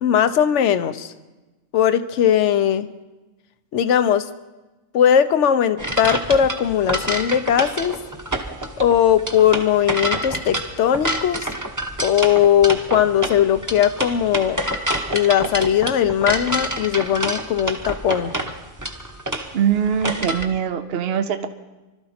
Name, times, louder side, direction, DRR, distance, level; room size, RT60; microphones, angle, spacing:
voice 1, 0.0-1.1 1.7-2.9 3.7-4.3 4.9-8.0 8.8-11.5 12.0-14.6 15.1-18.3, left 9 dB, 65° left, 12 dB, 1.0 m, -19 dB
sound 1, 5.8-20.4, right 1 dB, 15° right, 1.1 m, -27 dB
voice 2, 19.5-21.5, right 8 dB, 55° right, 8 dB, 0.9 m, -22 dB
25.0 x 13.0 x 4.3 m, 1.1 s
omnidirectional pair, 1.4 m